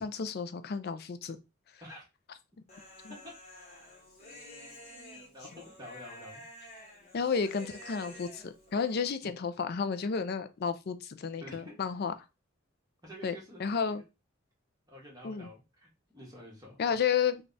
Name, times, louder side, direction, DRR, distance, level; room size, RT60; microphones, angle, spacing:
voice 1, 0.0-1.4 3.0-3.1 7.1-12.1 13.2-13.3 13.6-14.0 15.2-15.5 16.8-17.4, left 6 dB, 50° left, 0.4 m, -32 dB
Human voice, 2.7-9.1, left 1 dB, 35° left, 1.1 m, -50 dB
voice 2, 5.3-6.4 11.4-11.8 13.0-13.6 13.9-14.1 14.9-16.8, equal, 20° right, 1.5 m, -49 dB
3.3 x 2.3 x 3.9 m
head